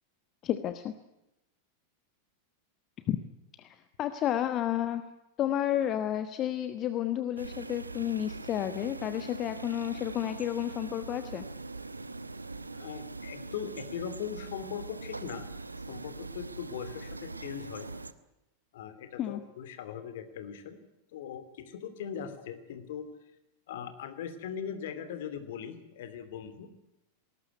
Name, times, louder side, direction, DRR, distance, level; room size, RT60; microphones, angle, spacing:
voice 1, 0.4-0.9 3.1-3.2 3.6-5.1 5.4-11.5 19.2-19.4, left 11 dB, 35° left, 10 dB, 1.2 m, -31 dB
sound 1, 7.4-18.1, right 3 dB, 80° right, 1.0 m, -42 dB
voice 2, 12.7-17.9 18.7-20.8 21.1-23.1 23.7-26.7, left 8 dB, 55° left, 10 dB, 2.9 m, -40 dB
20.5 x 19.0 x 9.4 m, 0.91 s
figure-of-eight pair, 90°, 0 cm